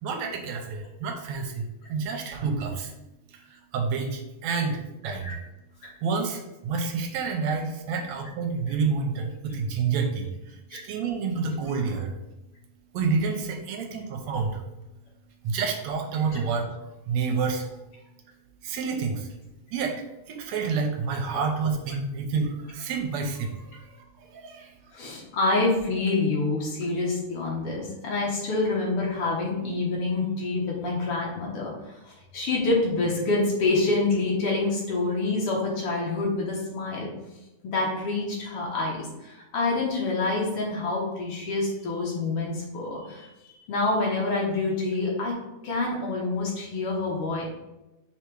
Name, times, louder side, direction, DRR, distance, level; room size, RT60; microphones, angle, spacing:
voice 1, 0.0-2.9 3.3-5.4 6.0-12.1 12.9-14.6 15.4-16.7 17.1-17.7 18.6-19.3 19.7-24.7, right 5 dB, 70° right, 3 dB, 1.9 m, -29 dB
voice 2, 24.9-31.7 32.1-37.1 37.6-45.4 45.6-47.5, left 3 dB, 55° left, -3 dB, 1.9 m, -27 dB
5.7 x 4.0 x 4.8 m, 0.99 s
omnidirectional pair, 3.6 m